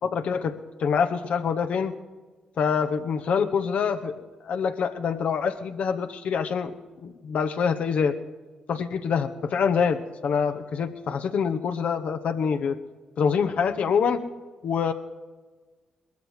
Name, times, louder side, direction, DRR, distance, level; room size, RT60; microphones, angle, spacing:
voice 1, 0.0-1.9 2.6-6.8 7.0-8.2 8.7-12.8 13.2-14.2 14.6-14.9, left 6 dB, 70° left, 8 dB, 1.0 m, -25 dB
20.0 x 13.5 x 4.8 m, 1.3 s
supercardioid pair, 50°, 2 cm